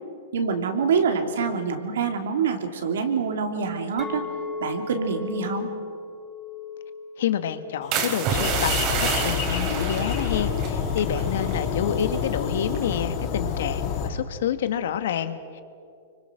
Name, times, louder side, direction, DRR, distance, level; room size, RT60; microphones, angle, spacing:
voice 1, 0.3-4.2 4.6-5.7, right 5 dB, 75° right, 5 dB, 3.1 m, -25 dB
Chink clink, 4.0-9.2, left 4 dB, 10° left, 1.9 m, -37 dB
voice 2, 7.2-15.6, left 9 dB, 70° left, 10 dB, 1.6 m, -28 dB
sound 1, 7.9-11.7 11.9-12.3 12.7-13.1, right 6 dB, 45° right, 3.7 m, -29 dB
sound 2, 8.3-14.1, left 6 dB, 45° left, 5.8 m, -28 dB
25.5 x 24.0 x 6.4 m, 2.5 s
hypercardioid pair, 125°, 0 cm